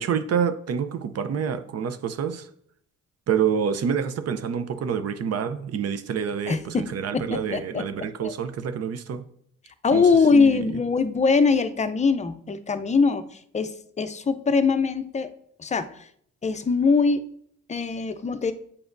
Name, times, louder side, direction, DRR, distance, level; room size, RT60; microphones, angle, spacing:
voice 1, 0.0-2.5 3.3-9.3 9.9-10.6, right 7 dB, 55° right, 0.6 m, -27 dB
voice 2, 6.5-8.3 9.8-15.3 15.6-16.1 16.4-17.2 17.7-18.5, left 4 dB, 25° left, 0.5 m, -22 dB
8.4 x 4.9 x 2.6 m
cardioid pair, 90°, 30 cm